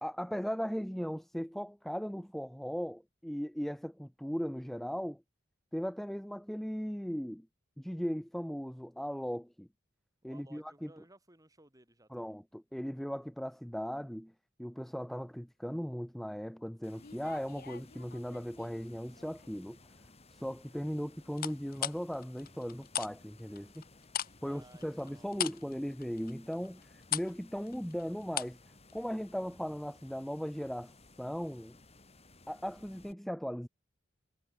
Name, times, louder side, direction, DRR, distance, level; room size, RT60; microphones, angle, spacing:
voice 1, 0.0-5.2 5.7-7.5 7.8-9.7 10.2-10.9 12.1-14.3 14.6-19.8 20.3-23.8 24.4-28.6 28.9-30.9 31.2-31.8 32.5-33.7, equal, ahead, 0.5 m, -38 dB
voice 2, 10.2-12.3 24.4-25.6, right 1 dB, 20° right, 6.5 m, -60 dB
sound 1, 16.8-33.1, left 2 dB, 30° left, 7.8 m, -59 dB
sound 2, 17.0-18.7 19.2-19.6 21.4-23.1 23.4-28.6 28.9-29.0, left 11 dB, 45° left, 0.8 m, -39 dB
head